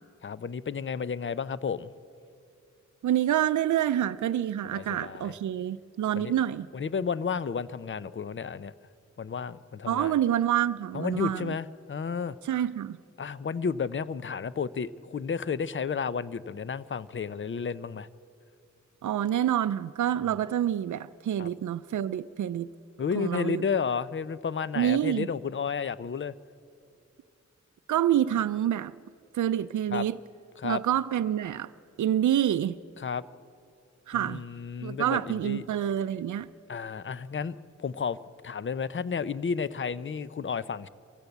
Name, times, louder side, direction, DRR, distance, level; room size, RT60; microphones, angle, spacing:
voice 1, 0.2-1.9 4.7-5.3 6.1-6.3 6.7-8.7 9.2-10.1 10.9-12.4 13.2-18.1 21.4-21.5 23.0-26.3 29.9-30.1 30.6-30.8 33.0-33.2 34.1-35.6 36.7-38.2 38.4-40.9, left 6 dB, 40° left, 0.6 m, -32 dB
voice 2, 3.0-6.7 9.9-11.6 12.4-13.0 19.0-22.7 23.1-23.6 24.7-25.3 27.9-28.9 29.3-30.2 30.6-31.7 32.0-32.8 34.1-34.4 34.8-36.5, right 11 dB, 85° right, 0.5 m, -27 dB
23.0 x 15.5 x 8.0 m
wide cardioid pair, 75°, 29 cm